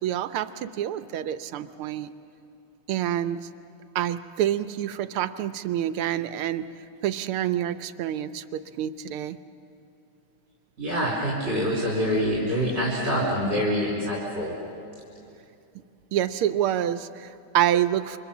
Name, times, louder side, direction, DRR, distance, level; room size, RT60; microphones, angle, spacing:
voice 1, 0.0-2.1 2.9-3.4 3.9-6.7 7.0-9.4 14.6-14.7 16.1-18.2, right 11 dB, 85° right, 12 dB, 1.7 m, -27 dB
voice 2, 10.8-14.5, equal, 30° right, -4 dB, 4.2 m, -25 dB
28.5 x 24.5 x 7.1 m, 2.7 s
omnidirectional pair, 2.4 m